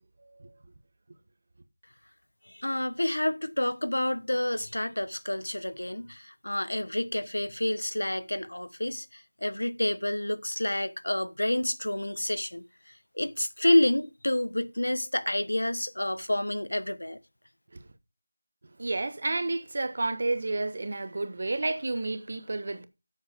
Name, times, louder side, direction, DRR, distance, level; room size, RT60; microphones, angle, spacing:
voice 1, 2.5-17.2, left 1 dB, 85° left, 1.2 m, -29 dB
voice 2, 18.8-22.9, right 2 dB, 40° right, 1.1 m, -30 dB
9.9 x 7.9 x 5.1 m
figure-of-eight pair, 175°, 0 cm